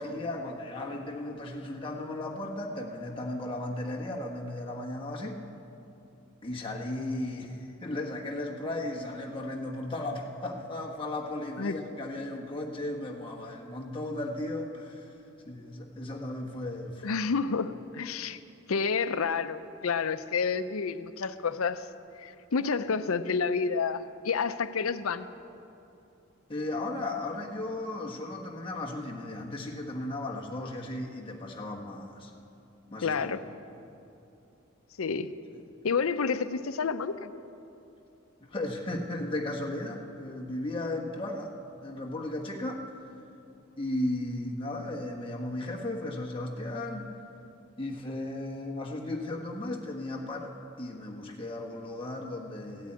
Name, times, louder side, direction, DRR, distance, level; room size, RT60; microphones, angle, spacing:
voice 1, 0.0-5.4 6.4-15.1 15.4-17.1 26.5-32.3 32.9-33.4 38.4-41.5 41.8-42.8 43.8-47.1 47.8-52.9, left 1 dB, 25° left, -1 dB, 1.3 m, -35 dB
voice 2, 17.0-18.4 18.7-21.9 22.2-25.3 33.0-33.4 35.0-35.3 35.8-37.3, left 5 dB, 90° left, 12 dB, 0.6 m, -29 dB
15.5 x 8.6 x 8.8 m, 2.8 s
head